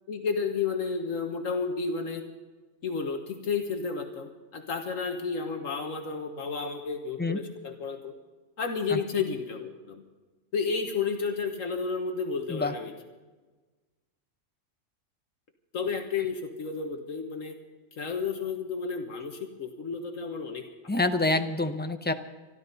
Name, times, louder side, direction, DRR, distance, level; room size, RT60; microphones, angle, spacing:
voice 1, 0.1-2.2 2.8-8.1 8.6-10.0 10.5-12.9 15.7-17.6 17.9-20.6, left 5 dB, 75° left, 5 dB, 1.6 m, -31 dB
voice 2, 20.9-22.1, left 2 dB, 15° left, 8 dB, 0.4 m, -27 dB
25.5 x 12.0 x 4.1 m, 1.3 s
omnidirectional pair, 1.4 m